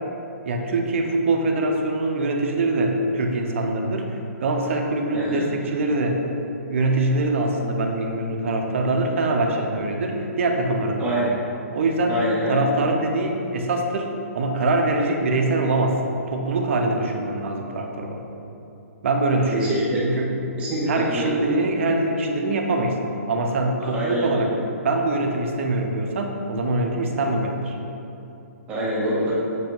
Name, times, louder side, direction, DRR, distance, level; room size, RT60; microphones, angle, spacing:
voice 1, 0.4-6.2 6.7-11.2 11.7-12.2 12.5-16.0 16.3-18.2 19.0-19.7 20.0-20.4 20.9-23.0 23.3-24.5 24.8-27.8, right 2 dB, 55° right, 2 dB, 0.8 m, -23 dB
voice 2, 5.1-5.4 11.0-11.3 12.1-12.6 19.5-20.1 20.6-21.3 23.9-24.4 28.7-29.4, right 1 dB, 15° right, -6 dB, 0.9 m, -25 dB
7.7 x 2.9 x 5.3 m, 2.9 s
hypercardioid pair, 165°, 9 cm